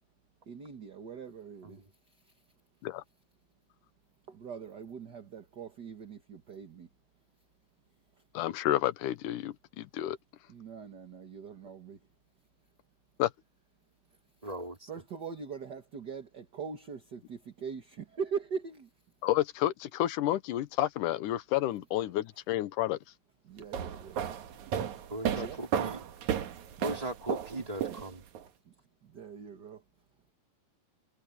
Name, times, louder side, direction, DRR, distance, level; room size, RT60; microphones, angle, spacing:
voice 1, 0.5-2.5 4.3-6.9 8.1-8.2 10.5-12.1 14.1-14.5 14.9-19.1 22.1-22.2 23.4-24.5 25.3-25.6 28.6-28.7 29.0-29.8, right 6 dB, 40° right, 1.8 m, -42 dB
voice 2, 8.3-10.2 13.2-13.3 19.2-23.0, left 14 dB, 75° left, 2.4 m, -30 dB
voice 3, 14.4-14.9 25.1-26.0 26.4-26.5 26.8-28.2, right 1 dB, 10° right, 3.7 m, -38 dB
sound 1, 23.6-28.4, right 9 dB, 65° right, 2.7 m, -34 dB
omnidirectional pair, 3.8 m